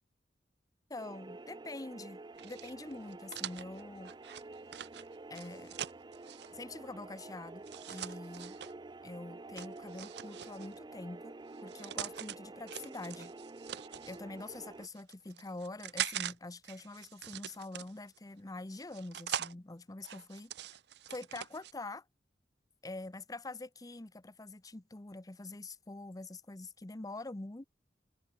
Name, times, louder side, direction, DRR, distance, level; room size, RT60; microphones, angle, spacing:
voice 1, 0.9-4.1 5.3-5.8 6.5-8.6 9.0-11.4 11.6-13.3 14.1-20.5 21.1-22.0 22.8-27.7, left 2 dB, 20° left, 0.7 m, -45 dB
sound 1, 1.0-14.9, right 2 dB, 25° right, 0.5 m, -49 dB
sound 2, 2.4-6.5 7.6-8.7 9.6-10.8 11.5-12.4 12.7-14.2 14.8-16.3 16.6-18.2 18.7-19.5 20.0-21.7, right 10 dB, 65° right, 0.7 m, -42 dB
head